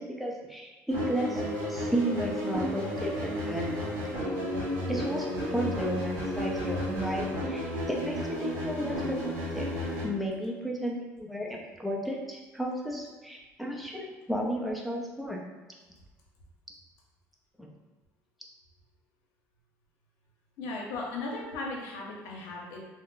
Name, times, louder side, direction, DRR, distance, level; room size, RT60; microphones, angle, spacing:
voice 1, 0.0-3.9 4.9-9.7 10.0-15.4 17.6-17.7, right 1 dB, ahead, -2 dB, 0.6 m, -33 dB
sound 1, 0.9-10.1, equal, 80° right, 1.0 m, -32 dB
voice 2, 20.6-22.8, left 3 dB, 85° left, -2 dB, 0.8 m, -36 dB
2.4 x 2.1 x 3.7 m, 1.2 s
cardioid pair, 100°, 6 cm